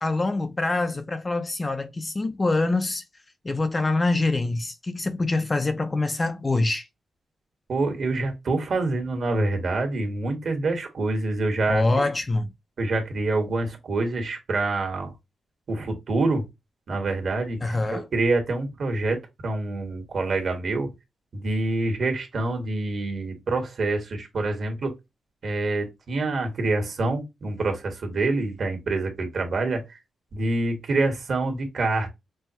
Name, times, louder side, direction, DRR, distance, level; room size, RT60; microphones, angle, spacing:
voice 1, 0.0-3.0 3.4-6.9 11.7-12.5 17.6-18.1, left 2 dB, 25° left, 0.5 m, -25 dB
voice 2, 7.7-11.8 12.8-15.1 15.7-16.4 16.9-20.9 21.3-24.9 25.4-29.8 30.3-32.1, right 2 dB, 55° right, 1.5 m, -26 dB
5.4 x 2.3 x 2.8 m
wide cardioid pair, 125°, 0 cm